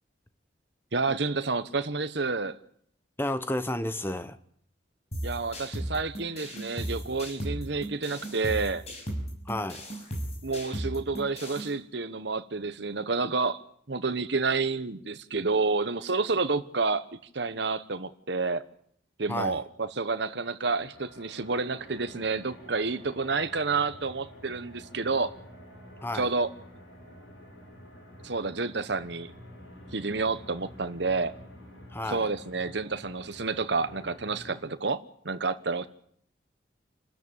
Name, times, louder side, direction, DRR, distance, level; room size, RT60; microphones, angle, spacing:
voice 1, 0.9-2.6 5.2-8.8 10.4-13.6 13.9-17.1 17.3-18.6 19.2-25.3 26.1-26.5 28.2-29.3 29.9-31.3 32.1-35.9, right 4 dB, 60° right, 1.1 m, -29 dB
voice 2, 3.2-4.4 9.4-9.8 19.3-19.6 26.0-26.3 31.9-32.3, left 1 dB, 10° left, 0.9 m, -31 dB
sound 1, 5.1-11.7, right 1 dB, 35° left, 6.2 m, -36 dB
sound 2, 20.7-34.6, equal, 85° left, 7.2 m, -49 dB
28.5 x 13.0 x 8.8 m
head